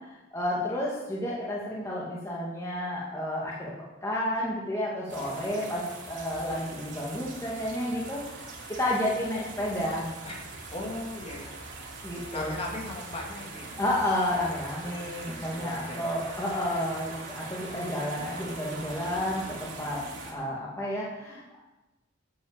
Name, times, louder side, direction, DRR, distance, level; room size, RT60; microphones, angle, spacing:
voice 1, 0.3-3.7 4.0-10.1 12.0-12.6 13.8-21.6, left 1 dB, 15° left, -6 dB, 2.2 m, -31 dB
sound 1, 5.1-20.3, right 3 dB, 60° right, 3.1 m, -42 dB
voice 2, 5.3-5.7 9.6-10.0 10.2-11.5 12.3-13.8 14.8-16.2 20.3-20.6, left 1 dB, 30° left, -1 dB, 2.9 m, -40 dB
12.5 x 8.3 x 7.4 m, 1.0 s
head